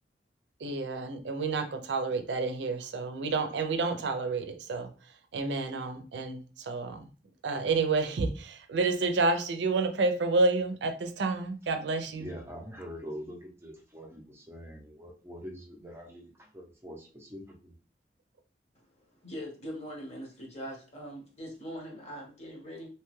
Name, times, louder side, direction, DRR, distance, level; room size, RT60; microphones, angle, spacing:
voice 1, 0.6-4.9 5.3-7.1 7.4-12.3, right 3 dB, 80° right, 0.4 m, -29 dB
voice 2, 12.1-17.7, equal, 15° right, 0.6 m, -44 dB
voice 3, 19.2-22.9, equal, 40° left, 0.9 m, -41 dB
2.8 x 2.2 x 3.1 m
head